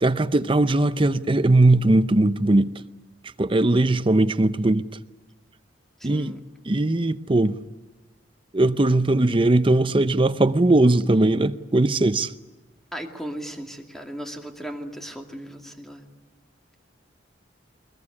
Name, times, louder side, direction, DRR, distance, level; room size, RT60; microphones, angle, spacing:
voice 1, 0.0-2.7 3.4-4.8 6.0-6.4 6.7-7.6 8.5-12.3, right 2 dB, 30° right, 0.7 m, -19 dB
voice 2, 6.0-6.4 12.9-16.1, equal, ahead, 2.4 m, -36 dB
22.0 x 22.0 x 9.8 m
head